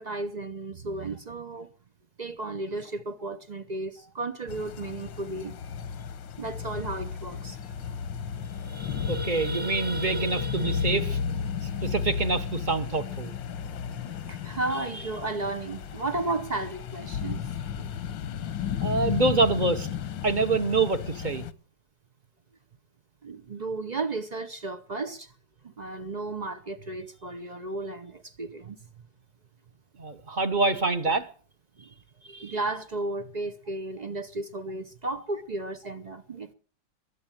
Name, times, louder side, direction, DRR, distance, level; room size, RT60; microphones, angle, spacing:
voice 1, 0.0-1.7 2.2-5.5 6.4-8.0 14.3-17.4 17.8-17.9 23.2-25.3 25.6-28.8 31.8-36.5, right 2 dB, 55° right, 0.4 m, -34 dB
sound 1, 4.5-21.5, left 7 dB, 90° left, 1.7 m, -33 dB
sound 2, 7.3-7.4 7.7-7.9 8.3-12.6, right 3 dB, 5° right, 1.1 m, -39 dB
voice 2, 9.1-11.2 11.8-13.3 18.8-19.9 20.2-21.4 30.0-31.3, right 3 dB, 30° right, 1.0 m, -26 dB
22.0 x 8.4 x 7.4 m
omnidirectional pair, 2.0 m